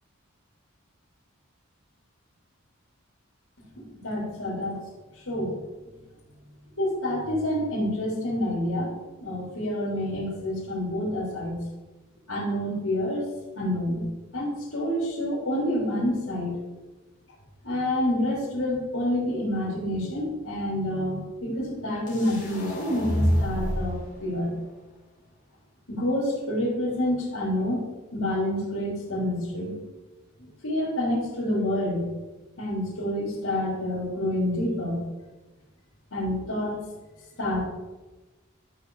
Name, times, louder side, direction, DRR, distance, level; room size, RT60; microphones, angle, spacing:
voice 1, 4.0-4.8 5.2-5.5 6.8-8.9 9.2-11.6 12.3-13.3 13.6-14.0 14.3-16.6 17.6-24.5 25.9-29.7 30.4-32.1 32.6-35.0 36.1-36.8 37.4-37.7, left 1 dB, 90° left, -6 dB, 3.5 m, -28 dB
sound 1, 22.1-24.0, equal, 40° left, 3.5 m, -27 dB
12.5 x 6.4 x 4.8 m, 1.2 s
head